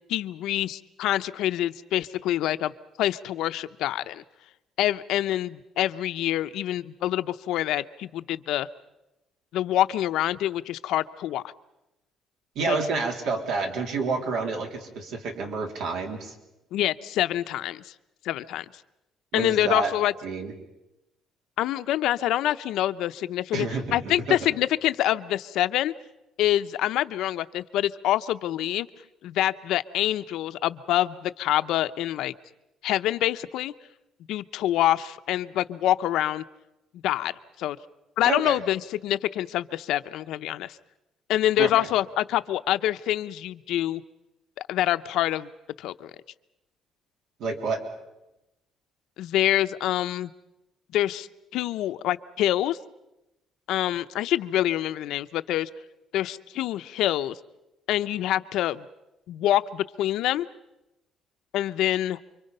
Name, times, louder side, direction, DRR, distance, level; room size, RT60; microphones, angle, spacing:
voice 1, 0.1-2.7 3.0-4.2 4.8-8.7 9.5-11.4 12.7-12.8 16.7-17.9 18.2-18.6 19.3-20.1 21.6-25.9 26.4-28.9 29.2-32.3 32.8-33.7 34.3-36.4 37.0-37.3 37.6-37.8 38.2-40.8 41.3-44.0 44.7-45.5 45.8-46.1 49.2-50.3 50.9-51.3 51.5-52.8 53.7-55.7 56.1-57.4 57.9-58.8 59.3-60.5 61.5-62.2, left 13 dB, 80° left, 12 dB, 0.8 m, -26 dB
voice 2, 12.6-16.3 19.3-19.9 20.2-20.5 23.5-24.4 38.2-38.6 41.6-41.9 47.4-47.8, right 4 dB, 75° right, 3 dB, 3.8 m, -29 dB
29.5 x 24.0 x 5.5 m, 0.92 s
cardioid pair, 145°, 0 cm